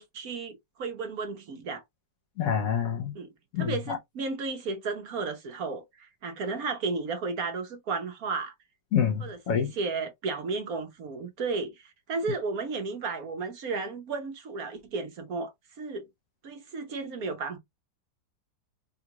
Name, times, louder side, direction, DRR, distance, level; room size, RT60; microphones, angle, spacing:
voice 1, 0.0-1.8 3.1-3.3 3.6-8.5 9.2-15.5 15.8-16.1 16.4-17.6, right 4 dB, 60° right, 1.3 m, -33 dB
voice 2, 2.4-3.1 3.5-4.0 8.9-9.7, left 8 dB, 60° left, 1.1 m, -27 dB
3.8 x 2.4 x 2.9 m
omnidirectional pair, 1.8 m